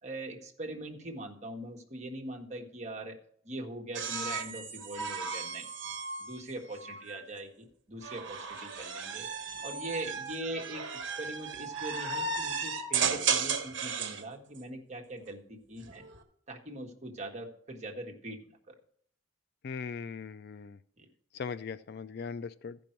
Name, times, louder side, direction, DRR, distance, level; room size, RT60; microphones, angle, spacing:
voice 1, 0.0-3.2 3.4-5.7 6.2-9.3 9.6-16.1 16.5-18.7 21.0-21.1, right 1 dB, 35° right, 2 dB, 1.5 m, -42 dB
sound 1, 3.9-7.2 8.0-14.2 15.7-16.2, right 5 dB, 60° right, 1.3 m, -35 dB
voice 2, 19.6-20.8 21.3-22.8, left 5 dB, 50° left, 14 dB, 0.4 m, -39 dB
14.5 x 5.4 x 4.5 m, 0.63 s
head